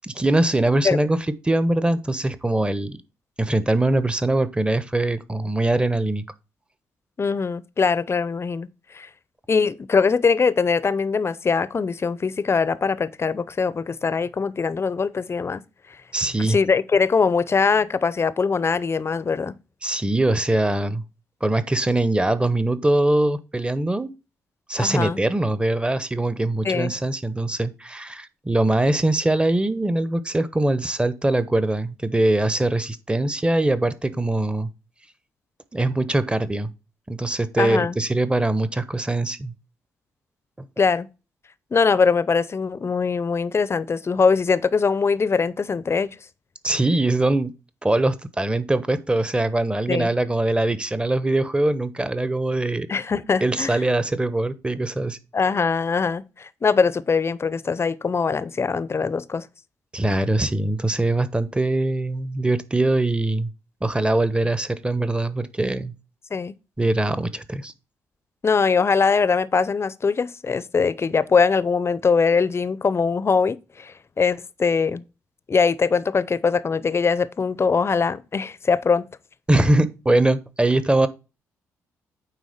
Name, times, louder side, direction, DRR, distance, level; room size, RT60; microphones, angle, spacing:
voice 1, 0.0-3.0 3.4-6.2 16.1-16.6 19.8-21.0 21.4-24.1 24.7-34.7 35.7-36.7 37.1-39.5 46.6-47.5 47.8-52.9 53.4-55.2 59.9-63.5 63.8-65.9 66.8-67.7 79.5-81.1, right 2 dB, 15° right, 1.0 m, -22 dB
voice 2, 7.2-8.7 8.9-9.1 9.5-15.6 16.4-19.5 24.8-25.2 26.6-26.9 37.6-38.0 40.8-41.1 41.7-46.2 49.9-50.1 52.9-53.8 55.3-59.5 66.3-66.5 68.4-75.0 75.5-79.1, left 5 dB, 35° left, 0.7 m, -22 dB
9.1 x 3.7 x 5.0 m
hypercardioid pair, 45°, 7 cm